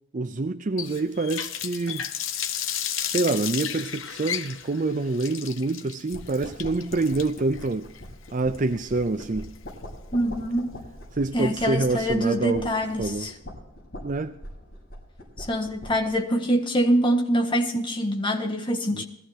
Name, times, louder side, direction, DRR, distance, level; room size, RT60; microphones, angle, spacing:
voice 1, 0.1-2.1 3.1-7.9 8.3-9.5 11.1-12.7 13.0-13.3 14.0-14.4 18.9-19.0, right 3 dB, 35° right, 0.5 m, -26 dB
Water tap faucet, 0.8-9.7, left 9 dB, 65° left, 0.9 m, -33 dB
sound 1, 6.1-16.2, equal, 45° left, 5.9 m, -42 dB
voice 2, 10.1-10.8 11.3-13.3 15.4-19.0, equal, 20° left, 1.5 m, -24 dB
21.0 x 14.0 x 2.8 m
head